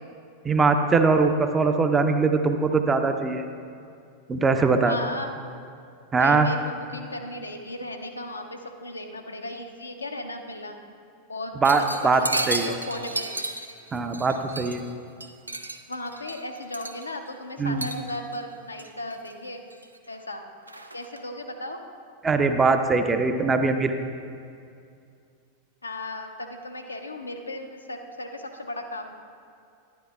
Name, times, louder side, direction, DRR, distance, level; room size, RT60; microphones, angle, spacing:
voice 1, 0.4-3.4 4.3-5.0 6.1-6.5 11.6-12.7 13.9-14.8 17.6-17.9 22.2-23.9, right 4 dB, 15° right, 7 dB, 0.5 m, -21 dB
voice 2, 4.8-5.3 6.2-10.8 11.3-11.5 12.0-13.3 15.9-19.6 20.1-20.4 20.9-21.8 25.8-29.1, left 1 dB, 80° left, 4 dB, 0.7 m, -36 dB
sound 1, 11.6-14.9 15.2-17.3 17.8-18.4 18.8-19.3 19.7-20.2 20.7-21.2, right 2 dB, 85° right, 0.5 m, -33 dB
11.5 x 10.5 x 2.3 m, 2.4 s
figure-of-eight pair, 90°, 0 cm